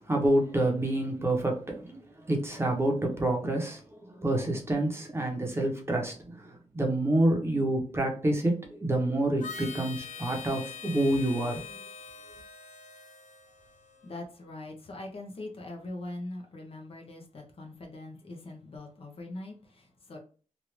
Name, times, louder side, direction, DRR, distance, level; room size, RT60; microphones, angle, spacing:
voice 1, 0.0-11.6, right 1 dB, 20° right, 1 dB, 0.8 m, -28 dB
Harmonica, 9.4-14.1, left 6 dB, 75° left, 0.6 m, -44 dB
voice 2, 14.0-20.2, left 2 dB, 50° left, 1 dB, 0.8 m, -42 dB
3.2 x 2.5 x 3.1 m, 0.38 s
wide cardioid pair, 130°, 13 cm